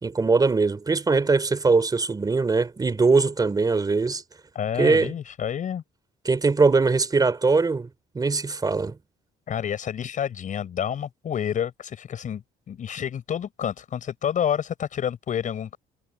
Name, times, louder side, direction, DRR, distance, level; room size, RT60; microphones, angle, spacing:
voice 1, 0.0-4.2 4.8-5.1 6.2-7.9 8.1-9.0, right 4 dB, 20° right, 3.4 m, -21 dB
voice 2, 4.6-5.8 9.5-12.4 12.7-15.8, left 9 dB, 50° left, 7.1 m, -29 dB
cardioid pair, 110°, 17 cm